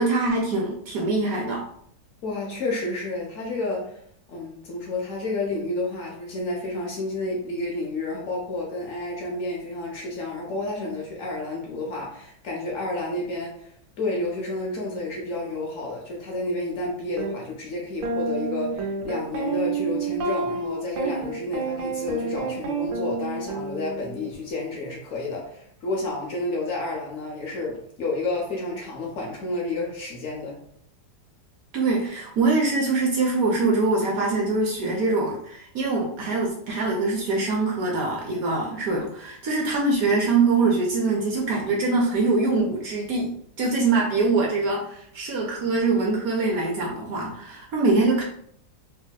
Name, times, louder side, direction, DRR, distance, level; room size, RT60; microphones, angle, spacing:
voice 1, 0.0-1.6 31.7-48.2, right 3 dB, 70° right, -1 dB, 0.8 m, -23 dB
voice 2, 2.2-4.0 4.3-30.6, left 2 dB, 75° left, -1 dB, 0.7 m, -30 dB
sound 1, 17.2-17.3 18.0-24.4, right 4 dB, 90° right, 1.3 m, -29 dB
3.1 x 2.8 x 2.3 m, 0.66 s
omnidirectional pair, 2.0 m